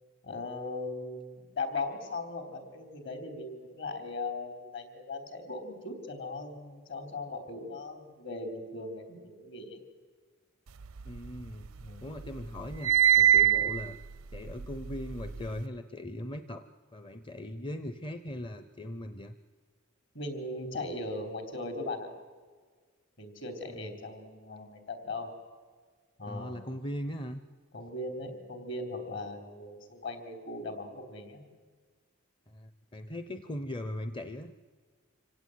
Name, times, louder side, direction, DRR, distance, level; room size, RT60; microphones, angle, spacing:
voice 1, 0.2-9.8 11.8-12.1 20.1-22.1 23.2-25.3 26.2-26.6 27.7-31.4, left 2 dB, 55° left, 6 dB, 3.8 m, -38 dB
sound 1, 10.8-11.9 12.2-15.6, right 11 dB, 85° right, 0.6 m, -25 dB
voice 2, 11.0-11.7 12.0-14.0 14.3-16.7 16.9-19.3 23.7-23.9 26.3-27.4 32.5-34.5, left 1 dB, 25° left, 10 dB, 0.7 m, -39 dB
26.0 x 17.0 x 9.4 m, 1.5 s
head